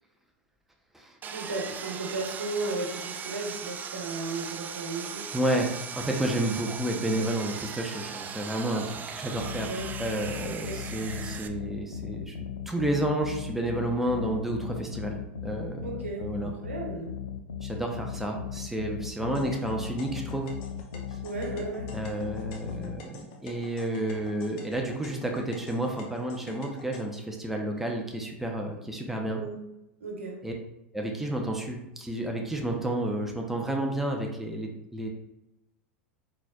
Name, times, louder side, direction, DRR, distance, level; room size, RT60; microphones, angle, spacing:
Sawing, 1.2-11.5, right 7 dB, 25° right, 0.4 m, -38 dB
voice 1, 1.3-5.3 9.6-9.8 10.4-11.1 15.8-17.1 21.2-21.9 29.3-29.6 30.0-30.4, right 2 dB, 80° right, 0 dB, 1.1 m, -35 dB
voice 2, 5.3-9.7 10.0-12.4 12.7-16.5 17.6-20.5 21.9-29.4 30.4-30.5 30.9-35.1, right 1 dB, 5° right, 1 dB, 0.7 m, -31 dB
sound 1, 9.3-23.0, left 8 dB, 85° left, 0.4 m, -38 dB
sound 2, 19.3-27.0, left 4 dB, 55° left, 0.8 m, -47 dB
4.2 x 4.1 x 2.3 m, 0.90 s
hypercardioid pair, 90°, 7 cm